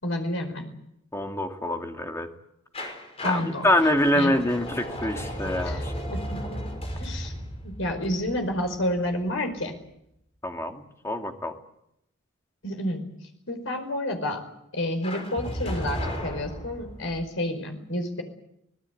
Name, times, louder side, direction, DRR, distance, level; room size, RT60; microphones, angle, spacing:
voice 1, 0.0-0.7 3.2-3.7 4.1-4.3 5.6-6.6 7.0-7.3 7.6-9.7 12.6-13.0 13.5-14.4 14.7-18.2, left 1 dB, 75° left, 6 dB, 5.0 m, -30 dB
voice 2, 1.1-2.3 3.2-5.9 10.4-11.5, left 1 dB, 15° left, 4 dB, 2.1 m, -25 dB
sound 1, 2.7-9.5 15.0-17.3, equal, 30° left, 5.3 m, -35 dB
25.5 x 19.0 x 8.4 m, 0.79 s
head